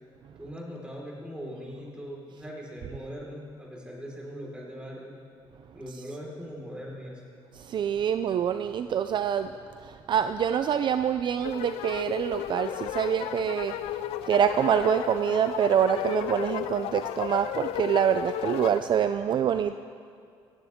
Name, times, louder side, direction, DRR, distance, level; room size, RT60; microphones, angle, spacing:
voice 1, 0.4-5.1 5.7-7.2, equal, 10° right, -3 dB, 4.6 m, -40 dB
voice 2, 7.5-9.5 9.8-19.7, right 8 dB, 50° right, 10 dB, 0.4 m, -26 dB
sound 1, 11.4-18.8, left 13 dB, 80° left, 0.4 m, -34 dB
18.0 x 16.5 x 3.7 m, 2.3 s
cardioid pair, 95°, 10 cm